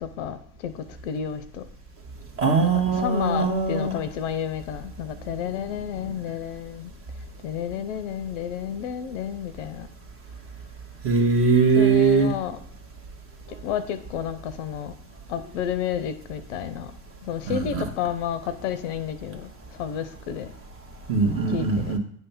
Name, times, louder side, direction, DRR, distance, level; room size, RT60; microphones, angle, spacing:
voice 1, 0.0-1.6 2.6-6.9 7.4-9.9 11.7-12.6 13.6-14.9 15.3-16.9 17.2-19.5 19.8-20.5 21.5-21.9, left 9 dB, 45° left, 12 dB, 0.8 m, -31 dB
voice 2, 2.4-3.9 11.0-12.3 17.5-17.9 21.1-22.0, right 4 dB, 25° right, 3 dB, 1.5 m, -21 dB
9.4 x 3.4 x 5.8 m, 0.68 s
figure-of-eight pair, 90°, 49 cm